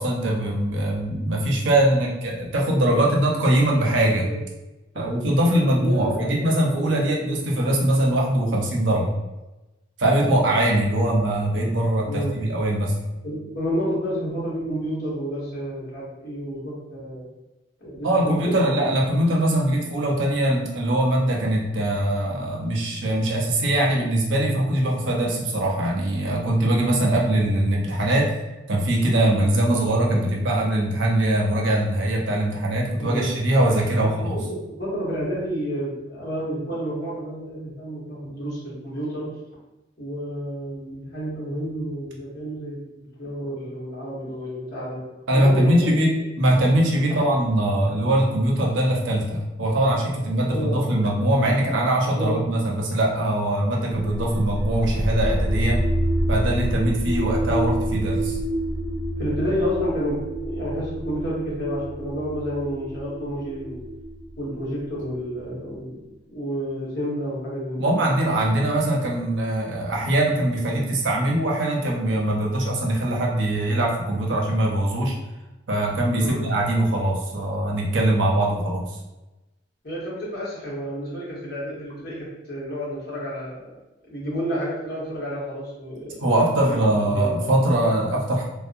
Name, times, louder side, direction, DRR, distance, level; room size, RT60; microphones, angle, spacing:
voice 1, 0.0-4.3 4.9-9.2 10.0-12.9 18.0-28.3 28.7-34.4 45.3-55.8 56.3-58.4 67.8-75.2 75.7-78.9 86.2-88.4, right 1 dB, 85° right, -1 dB, 0.6 m, -22 dB
voice 2, 5.8-6.5 6.8-7.4 10.2-10.4 12.1-12.4 13.2-17.2 17.8-18.8 33.0-33.3 34.0-39.3 40.0-42.8 43.2-45.0 45.3-46.3 47.1-47.2 50.5-50.8 52.0-52.3 59.2-63.8 64.4-66.0 66.3-67.9 76.2-76.4 79.8-83.6 84.1-86.2 86.7-86.8 87.1-87.2, equal, 55° left, -7 dB, 1.0 m, -30 dB
sound 1, 53.9-65.7, right 1 dB, 35° right, 0.6 m, -28 dB
2.6 x 2.1 x 2.4 m, 1.0 s
head